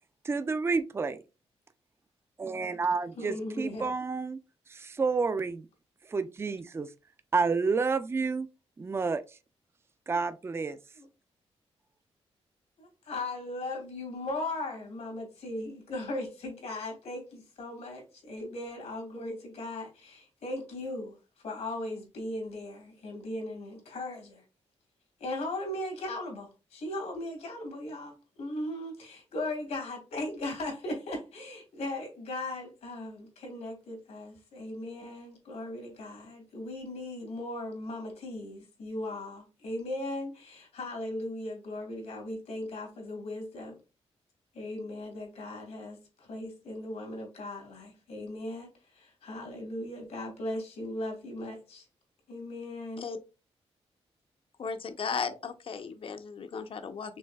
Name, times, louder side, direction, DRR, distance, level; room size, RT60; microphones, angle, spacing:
voice 1, 0.2-1.2 2.4-4.4 4.7-5.7 6.1-6.9 7.3-8.5 8.8-9.2 10.1-10.8, right 4 dB, 20° right, 0.4 m, -29 dB
voice 2, 3.2-3.9 11.0-11.1 12.8-21.1 21.4-24.4 25.2-43.8 44.5-48.7 48.9-51.8 52.3-53.0, left 1 dB, 85° left, 2.3 m, -38 dB
voice 3, 54.6-57.2, left 5 dB, 55° left, 0.6 m, -36 dB
5.4 x 3.2 x 2.3 m
cardioid pair, 100°, 11 cm